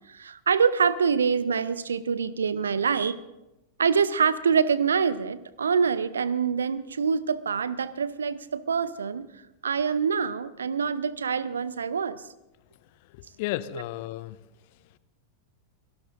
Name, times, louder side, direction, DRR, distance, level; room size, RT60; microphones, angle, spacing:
voice 1, 0.0-3.2 3.8-9.3 9.6-12.2, right 6 dB, 70° right, 17 dB, 0.7 m, -25 dB
voice 2, 13.1-14.4, left 15 dB, 50° left, 16 dB, 0.7 m, -33 dB
27.5 x 18.0 x 2.6 m, 0.94 s
figure-of-eight pair, 90°, 0 cm